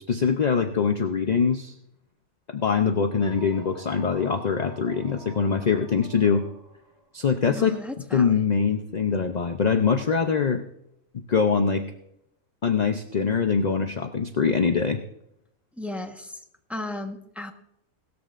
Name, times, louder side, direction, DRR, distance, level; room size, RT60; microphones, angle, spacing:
voice 1, 0.0-1.7 2.5-6.4 7.1-7.8 8.1-10.6 11.3-11.8 12.6-15.0, left 6 dB, 45° left, 7 dB, 0.5 m, -23 dB
sound 1, 3.0-7.0, right 1 dB, 25° right, 3.9 m, -48 dB
voice 2, 7.5-8.4 15.8-16.4 16.7-17.5, left 1 dB, ahead, 4 dB, 1.0 m, -35 dB
18.0 x 14.0 x 2.5 m, 0.78 s
omnidirectional pair, 1.6 m